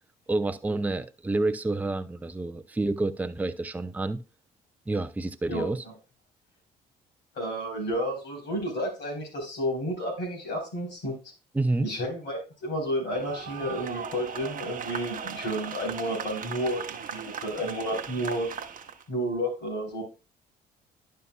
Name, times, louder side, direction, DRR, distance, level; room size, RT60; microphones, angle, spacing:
voice 1, 0.3-4.2 4.9-5.8 11.5-11.9, right 2 dB, 10° right, 0.5 m, -28 dB
voice 2, 5.5-5.9 7.3-11.1 11.8-18.5 19.1-20.0, equal, 60° left, 4.0 m, -31 dB
sound 1, 13.1-19.0, right 7 dB, 45° right, 0.9 m, -38 dB
11.0 x 5.6 x 2.3 m
hypercardioid pair, 50°, 20 cm